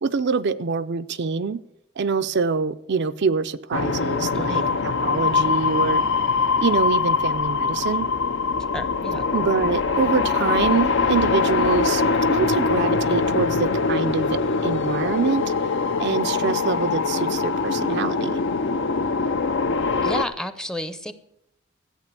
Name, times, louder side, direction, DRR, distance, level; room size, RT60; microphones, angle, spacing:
voice 1, 0.0-1.6 2.0-6.0 6.6-8.1 9.3-12.0 12.3-15.4 16.0-18.4, right 5 dB, 55° right, 0.5 m, -25 dB
sound 1, 3.7-20.2, left 4 dB, 60° left, 0.6 m, -23 dB
voice 2, 4.3-4.8 8.7-9.3 20.0-21.1, equal, 5° left, 0.6 m, -31 dB
14.0 x 8.5 x 7.5 m
head